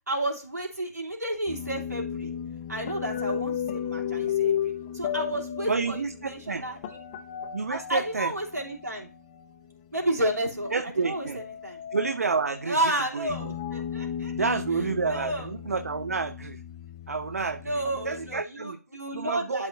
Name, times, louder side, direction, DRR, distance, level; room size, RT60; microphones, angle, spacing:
voice 1, 0.1-2.3 2.7-7.0 7.7-9.1 9.9-11.8 12.6-14.3 14.7-15.5 17.6-19.7, right 1 dB, 80° right, 3.2 m, -31 dB
sound 1, 1.5-9.7 10.3-18.4, left 9 dB, 25° left, 0.6 m, -35 dB
voice 2, 5.7-6.6 7.5-8.3 10.7-11.4 11.9-12.8 13.1-13.3 14.3-16.6 17.1-17.8 18.1-18.8 19.1-19.7, right 4 dB, 60° right, 0.5 m, -29 dB
11.5 x 5.2 x 2.7 m
figure-of-eight pair, 140°, 9 cm